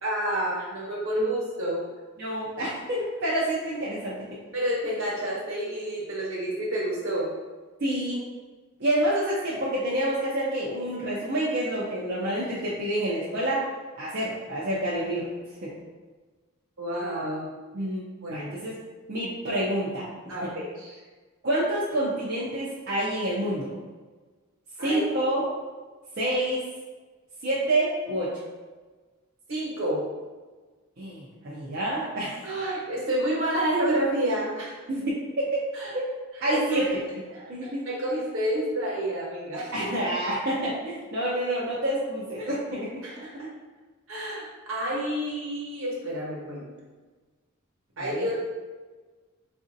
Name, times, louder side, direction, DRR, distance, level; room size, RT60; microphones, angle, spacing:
voice 1, 0.0-1.8 4.5-7.3 16.8-17.5 18.2-18.5 20.3-21.0 24.8-25.1 29.5-30.0 32.4-34.7 35.7-35.9 36.5-36.9 37.3-39.9 42.4-42.5 43.0-43.5 44.1-46.7 48.0-48.3, right 1 dB, 70° right, -5 dB, 1.2 m, -29 dB
voice 2, 2.2-4.2 7.8-8.2 8.8-13.6 14.0-15.3 15.6-15.7 17.7-18.0 18.3-18.8 19.1-20.5 21.4-23.7 24.8-25.4 26.2-26.6 27.4-28.3 31.0-32.4 34.9-35.6 36.4-36.8 37.5-37.8 39.7-43.0 48.0-48.3, right 1 dB, 50° right, -8 dB, 0.6 m, -28 dB
4.0 x 2.5 x 2.6 m, 1.3 s
head